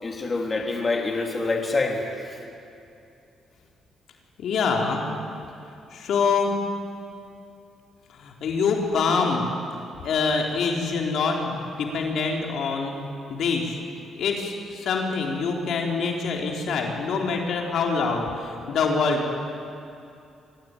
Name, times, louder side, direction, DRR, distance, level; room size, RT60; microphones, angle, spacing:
voice 1, 0.0-2.4, left 3 dB, 30° left, 1 dB, 3.2 m, -26 dB
voice 2, 4.4-5.1 5.9-6.5 8.2-9.5 10.0-13.0 13.3-13.8 14.2-19.4, left 4 dB, 70° left, 1 dB, 3.9 m, -25 dB
24.5 x 18.5 x 9.2 m, 2.6 s
cardioid pair, 90°, 0 cm